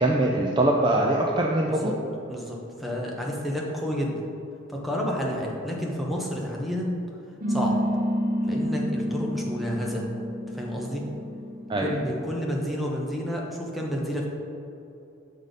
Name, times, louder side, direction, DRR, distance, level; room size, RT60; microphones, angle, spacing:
voice 1, 0.0-1.9 11.7-11.9, right 1 dB, 25° right, -1 dB, 0.3 m, -22 dB
voice 2, 2.3-4.2 4.7-6.9 7.5-7.7 8.4-10.1 10.5-11.0 11.8-14.3, equal, ahead, -3 dB, 0.8 m, -30 dB
sound 1, 7.4-12.3, equal, 45° right, 1.1 m, -29 dB
6.4 x 4.0 x 5.1 m, 2.7 s
head